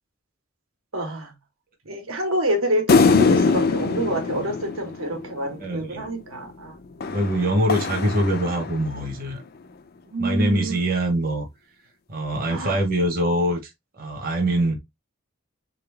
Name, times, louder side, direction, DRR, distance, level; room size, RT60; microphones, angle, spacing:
voice 1, 0.9-1.3 1.8-6.8 7.5-7.7 10.1-10.9 12.5-12.8, right 1 dB, 90° right, 1.6 m, -27 dB
sound 1, 2.9-5.6 7.0-9.1, left 4 dB, 45° left, 0.4 m, -22 dB
voice 2, 5.6-6.1 7.1-9.4 10.2-11.5 12.1-13.7 14.0-14.8, right 1 dB, 45° right, 1.0 m, -23 dB
3.8 x 3.7 x 3.3 m
head